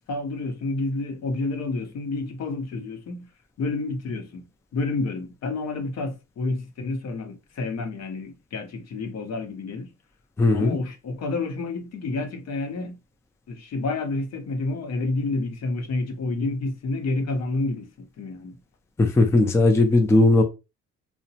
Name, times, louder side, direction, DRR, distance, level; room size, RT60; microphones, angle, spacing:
voice 1, 0.1-3.2 3.6-4.5 4.7-9.9 10.5-12.9 13.5-18.6, left 3 dB, 60° left, 0.7 m, -29 dB
voice 2, 10.4-10.8 19.0-20.4, left 2 dB, 10° left, 0.4 m, -18 dB
2.8 x 2.1 x 2.7 m
cardioid pair, 90°, 30 cm